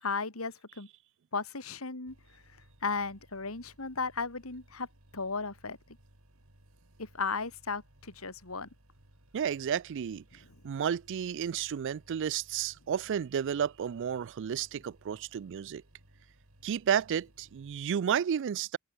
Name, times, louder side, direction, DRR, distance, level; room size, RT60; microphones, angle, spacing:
voice 1, 0.0-0.9 1.3-2.4 2.8-4.9 5.1-5.8 7.0-8.7, left 4 dB, 75° left, 2.8 m, -35 dB
sound 1, 2.1-17.9, right 1 dB, 80° right, 5.5 m, -62 dB
voice 2, 9.3-15.8 16.6-18.8, right 8 dB, 60° right, 0.4 m, -32 dB
head